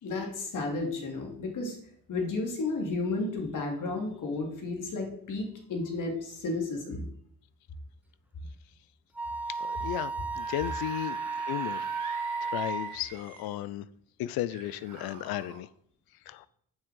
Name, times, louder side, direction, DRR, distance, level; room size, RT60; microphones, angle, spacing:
voice 1, 0.0-1.8 2.1-7.0, left 3 dB, 50° left, 2.9 m, -32 dB
Wind instrument woodwind instrument, 9.2-13.0, right 4 dB, 5° right, 1.0 m, -34 dB
voice 2, 9.6-11.2 11.5-12.1 12.4-13.9 14.2-15.7 16.3-16.5, left 13 dB, 65° left, 0.6 m, -35 dB
Screaming / Screech, 10.2-13.5 14.5-15.6, right 6 dB, 50° right, 1.8 m, -45 dB
7.5 x 6.1 x 6.5 m
supercardioid pair, 80°, 39 cm